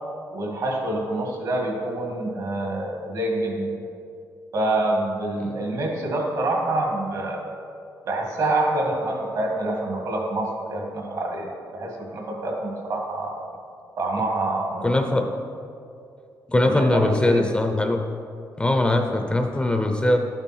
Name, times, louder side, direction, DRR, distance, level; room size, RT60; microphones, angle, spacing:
voice 1, 0.3-3.9 4.5-7.5 8.1-13.4 14.0-14.9 16.6-17.5, right 2 dB, 55° right, 0 dB, 2.2 m, -26 dB
voice 2, 14.8-15.3 16.5-18.0 18.6-20.2, left 1 dB, 15° left, 5 dB, 0.7 m, -21 dB
12.0 x 8.8 x 4.5 m, 2.5 s
wide cardioid pair, 155°, 7 cm